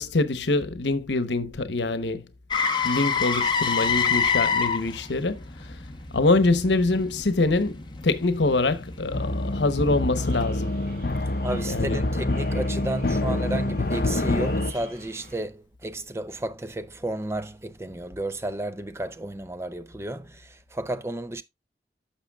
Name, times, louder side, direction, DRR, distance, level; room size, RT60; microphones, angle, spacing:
voice 1, 0.0-2.3 2.8-5.8 6.1-10.8 11.6-12.1, left 2 dB, 80° left, 0.9 m, -25 dB
Motor vehicle (road), 2.5-10.4 14.8-14.9, left 6 dB, 25° left, 1.0 m, -28 dB
sound 1, 9.1-14.7, left 2 dB, 55° left, 0.7 m, -26 dB
sound 2, 10.1-15.4, right 1 dB, 55° right, 4.8 m, -47 dB
voice 2, 11.4-21.4, right 1 dB, 15° right, 0.5 m, -32 dB
11.5 x 6.7 x 2.3 m
head